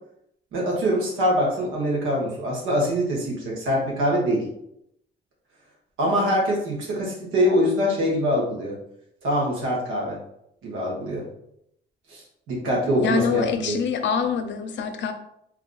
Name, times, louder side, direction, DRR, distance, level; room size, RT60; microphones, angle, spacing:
voice 1, 0.5-4.4 6.0-8.8 9.2-10.2 10.6-11.2 12.1-13.8, equal, 90° right, -3 dB, 1.4 m, -24 dB
voice 2, 13.0-15.1, left 6 dB, 65° left, 7 dB, 0.5 m, -25 dB
3.1 x 2.4 x 3.9 m, 0.76 s
cardioid pair, 90°, 20 cm